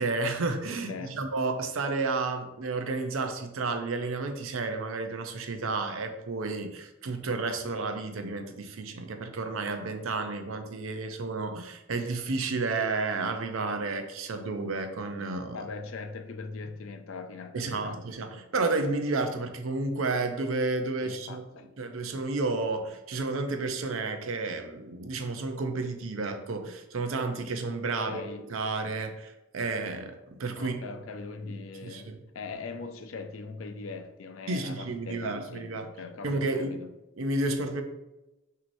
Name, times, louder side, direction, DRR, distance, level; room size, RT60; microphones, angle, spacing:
voice 1, 0.0-15.6 17.5-21.4 21.8-28.2 28.5-30.8 31.8-32.2 34.5-35.9 36.2-36.8 37.2-37.8, right 3 dB, 85° right, 7 dB, 0.6 m, -31 dB
voice 2, 0.9-1.2 15.5-18.0 21.0-21.7 27.9-28.5 30.6-36.9, left 4 dB, 80° left, 7 dB, 0.5 m, -41 dB
6.1 x 2.8 x 2.6 m, 0.97 s
head